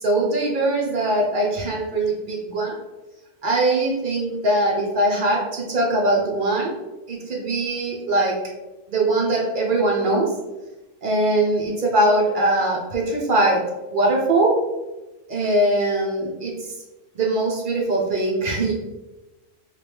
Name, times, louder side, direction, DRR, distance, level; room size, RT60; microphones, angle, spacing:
voice 1, 0.0-2.8 3.4-6.8 7.1-8.4 8.9-10.3 11.0-14.6 15.3-16.7 17.2-18.7, right 2 dB, 50° right, -2 dB, 0.7 m, -21 dB
3.0 x 3.0 x 3.3 m, 1.1 s
omnidirectional pair, 1.3 m